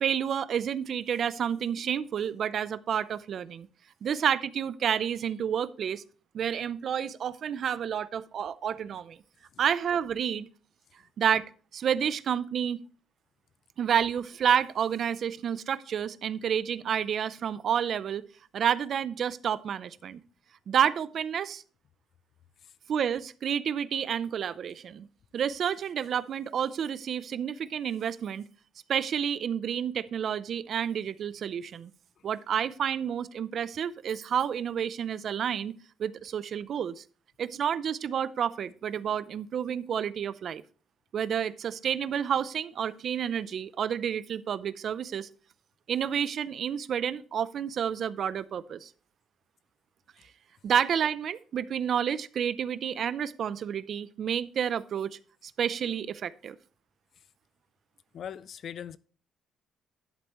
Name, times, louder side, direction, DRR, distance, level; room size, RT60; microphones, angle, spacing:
voice 1, 0.0-3.7 4.0-6.0 6.3-9.2 9.6-10.5 11.2-11.4 11.7-12.8 13.8-18.2 18.5-20.2 20.7-21.6 22.9-25.1 25.3-28.4 28.9-31.9 32.2-35.7 36.0-37.0 37.4-40.6 41.1-45.3 45.9-48.9 50.6-56.6, right 8 dB, 50° right, 0.5 m, -30 dB
voice 2, 58.1-59.0, left 8 dB, 50° left, 0.4 m, -40 dB
11.0 x 7.8 x 3.0 m
cardioid pair, 130°, 0 cm